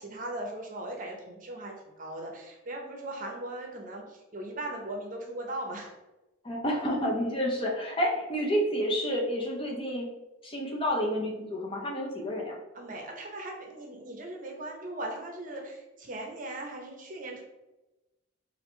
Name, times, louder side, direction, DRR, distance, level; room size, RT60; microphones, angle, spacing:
voice 1, 0.0-5.9 12.7-17.4, right 1 dB, 40° right, 2 dB, 0.7 m, -39 dB
voice 2, 6.4-10.1 10.4-12.6, equal, 25° left, -1 dB, 0.7 m, -29 dB
4.8 x 2.6 x 3.2 m, 1.0 s
head